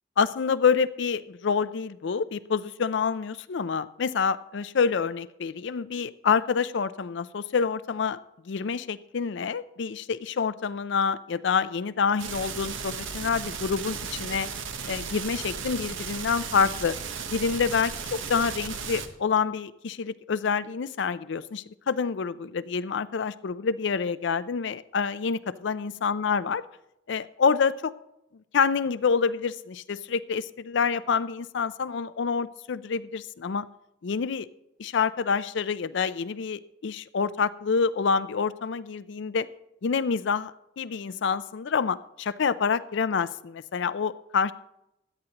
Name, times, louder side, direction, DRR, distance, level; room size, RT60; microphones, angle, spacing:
voice 1, 0.2-8.2 8.5-14.5 14.9-17.0 17.3-17.9 18.3-26.6 27.1-27.9 28.5-33.7 34.0-34.5 34.8-39.5 39.8-44.5, left 5 dB, 60° left, 16 dB, 0.4 m, -27 dB
sound 1, 12.2-19.1, right 6 dB, 75° right, 1.0 m, -35 dB
16.5 x 11.0 x 2.9 m, 0.85 s
head